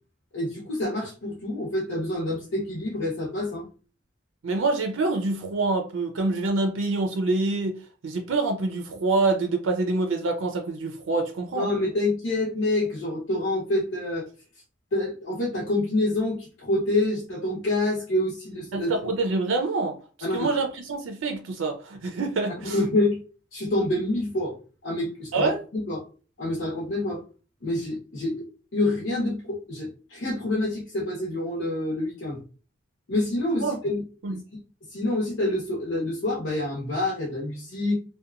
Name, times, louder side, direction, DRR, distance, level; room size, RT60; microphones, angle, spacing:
voice 1, 0.3-3.6 11.5-14.2 14.9-18.9 20.2-20.5 22.6-23.2 23.5-24.5 24.8-26.0 26.4-27.2 27.6-32.4 33.1-34.0 34.3-34.4 34.9-37.9, left 1 dB, 80° left, 0.8 m, -27 dB
voice 2, 4.4-7.8 8.0-11.7 18.7-20.0 20.3-22.8 25.3-25.6 33.6-33.7 34.2-34.4, right 3 dB, 90° right, 0.5 m, -26 dB
2.8 x 2.2 x 2.4 m
head